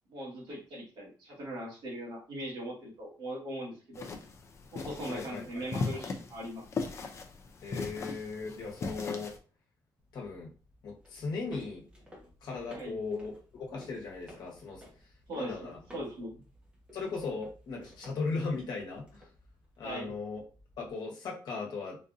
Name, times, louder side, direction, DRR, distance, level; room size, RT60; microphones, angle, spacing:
voice 1, 0.1-4.1 4.7-6.8 12.7-13.0 15.3-16.4 19.8-20.1, right 1 dB, 65° right, -3 dB, 1.7 m, -40 dB
sound 1, 3.9-9.4, left 4 dB, 35° left, 0.4 m, -38 dB
voice 2, 5.1-5.6 7.6-9.3 10.1-10.5 10.8-11.8 12.4-14.8 15.3-15.8 16.9-19.3 19.8-20.4 20.8-22.0, left 4 dB, 60° left, -1 dB, 1.2 m, -37 dB
sound 2, 10.0-20.9, left 1 dB, 15° right, 1.0 m, -55 dB
4.0 x 2.5 x 2.6 m, 0.36 s
cardioid pair, 170°, 8 cm